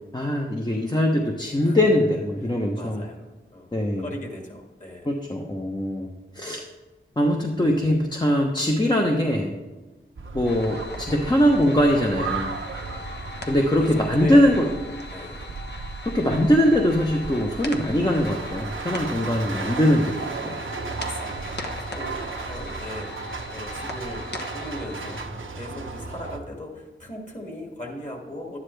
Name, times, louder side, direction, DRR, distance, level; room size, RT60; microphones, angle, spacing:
voice 1, 0.1-3.0 3.7-4.1 5.0-6.1 6.3-6.6 7.2-9.5 10.3-12.5 13.5-14.6 16.1-20.2 20.4-20.6, equal, 20° left, 0 dB, 0.9 m, -21 dB
voice 2, 2.4-3.2 3.5-5.1 13.8-14.7 15.1-15.5 21.0-24.2 24.5-28.6, left 1 dB, 35° left, 0 dB, 2.4 m, -38 dB
sound 1, 10.2-26.4, right 4 dB, 80° right, 1.0 m, -35 dB
sound 2, 10.4-25.3, left 2 dB, 60° left, 1.1 m, -39 dB
11.5 x 9.6 x 3.4 m, 1.2 s
wide cardioid pair, 75°, 20 cm